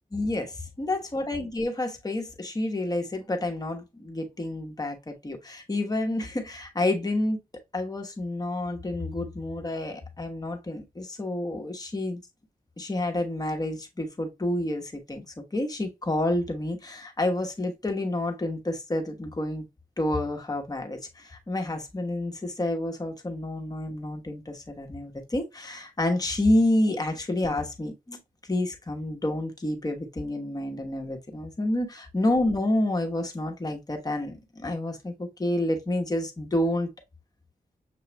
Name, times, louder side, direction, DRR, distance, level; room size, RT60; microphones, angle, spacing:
voice 1, 0.1-7.4 7.7-12.2 12.8-15.2 15.5-19.6 20.0-28.2 28.5-36.9, left 1 dB, 25° left, 1.0 m, -29 dB
6.9 x 2.3 x 2.9 m
wide cardioid pair, 95°, 15 cm